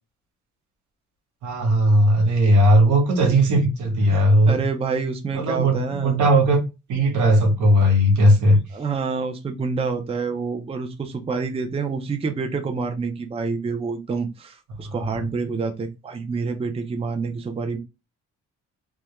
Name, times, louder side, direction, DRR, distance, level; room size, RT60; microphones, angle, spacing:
voice 1, 1.4-4.6 5.3-6.6 6.9-8.6, equal, 80° right, 0.9 m, -17 dB
voice 2, 4.1-6.1 8.7-17.8, right 4 dB, 20° right, 0.5 m, -27 dB
2.2 x 2.1 x 2.9 m
cardioid pair, 90°, 30 cm